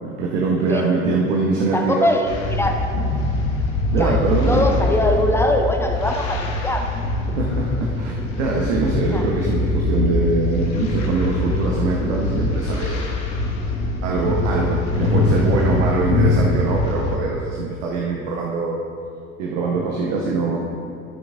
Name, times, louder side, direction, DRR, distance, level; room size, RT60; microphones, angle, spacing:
voice 1, 0.0-2.1 3.9-4.7 7.4-13.2 14.0-18.8 19.4-20.6, right 3 dB, 55° right, -1 dB, 1.0 m, -23 dB
voice 2, 1.7-2.8 4.0-4.2 4.5-6.9 9.0-9.6, left 1 dB, 5° left, 3 dB, 0.4 m, -22 dB
sound 1, 2.3-17.2, left 2 dB, 60° left, 1.3 m, -23 dB
13.0 x 6.1 x 2.5 m, 2.6 s
figure-of-eight pair, 75°, 41 cm